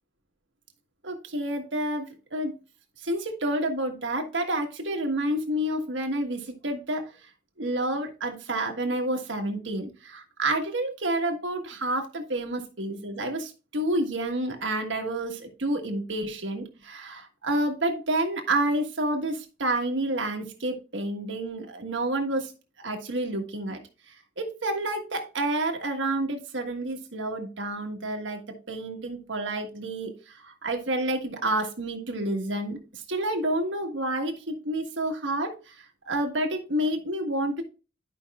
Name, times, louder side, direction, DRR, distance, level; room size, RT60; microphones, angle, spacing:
voice 1, 1.0-2.5 3.0-7.0 7.6-22.5 22.8-23.8 24.4-28.4 28.7-37.6, right 1 dB, 90° right, 4 dB, 1.5 m, -29 dB
11.5 x 5.4 x 2.4 m, 0.32 s
head